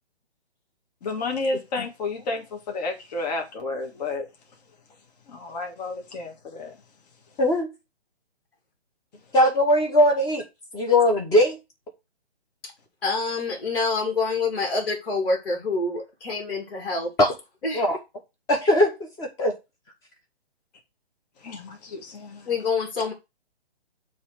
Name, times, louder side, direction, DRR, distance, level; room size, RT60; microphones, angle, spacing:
voice 1, 1.0-4.3 5.3-6.7 21.4-22.7, left 3 dB, 40° left, 1.7 m, -31 dB
voice 2, 7.4-7.7 9.3-10.4 10.7-11.6 17.2-17.3 17.7-18.0 18.5-19.5, left 1 dB, 10° left, 1.0 m, -20 dB
voice 3, 13.0-17.1 17.6-17.8 22.5-23.1, left 3 dB, 60° left, 2.8 m, -26 dB
7.2 x 3.2 x 6.1 m
hypercardioid pair, 145°, 32 cm